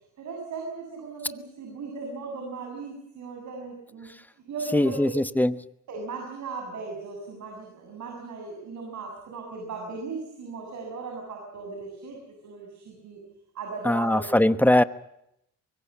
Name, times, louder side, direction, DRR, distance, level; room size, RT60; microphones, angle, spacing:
voice 1, 0.2-4.1 4.5-5.1 5.9-12.2 12.4-13.2 13.5-14.4, right 4 dB, 70° right, 7.4 m, -37 dB
voice 2, 4.7-5.5 13.8-14.8, left 1 dB, 5° left, 1.1 m, -21 dB
24.5 x 22.0 x 7.5 m
cardioid pair, 90°, 30 cm